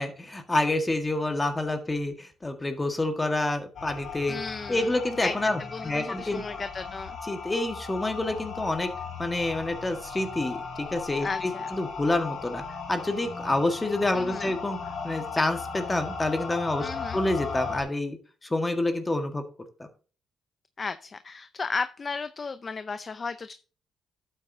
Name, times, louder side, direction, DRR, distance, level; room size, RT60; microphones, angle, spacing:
voice 1, 0.0-4.4 4.7-6.4 7.3-8.9 9.2-12.6 12.9-14.8 15.0-18.2 18.4-19.4 19.8-19.9, left 2 dB, 15° left, 6 dB, 1.7 m, -28 dB
sound 1, 3.7-17.8, left 5 dB, 60° left, 4.8 m, -37 dB
voice 2, 4.3-4.9 5.2-7.2 11.2-11.7 14.1-14.5 16.8-17.2 20.8-23.5, left 4 dB, 35° left, 10 dB, 0.6 m, -34 dB
12.0 x 8.2 x 2.8 m, 0.37 s
cardioid pair, 90°, 0 cm